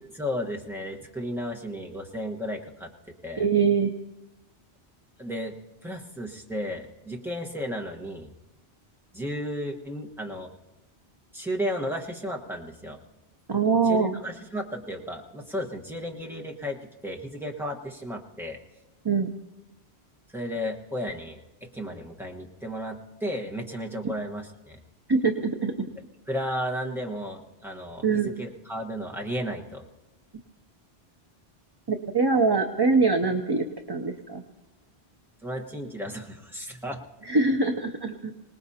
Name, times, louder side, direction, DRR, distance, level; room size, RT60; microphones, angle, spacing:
voice 1, 0.0-2.9 3.2-3.5 5.2-5.5 5.8-8.3 9.1-10.5 11.3-13.0 13.8-18.6 20.3-24.8 26.3-29.8 35.4-37.0, equal, ahead, 0 dB, 1.2 m, -34 dB
voice 2, 3.4-3.9 13.5-14.2 19.0-19.3 24.0-24.1 25.1-25.9 28.0-28.3 31.9-34.4 37.2-38.3, right 4 dB, 30° right, 5 dB, 0.5 m, -23 dB
25.5 x 19.0 x 2.8 m, 1.1 s
omnidirectional pair, 1.1 m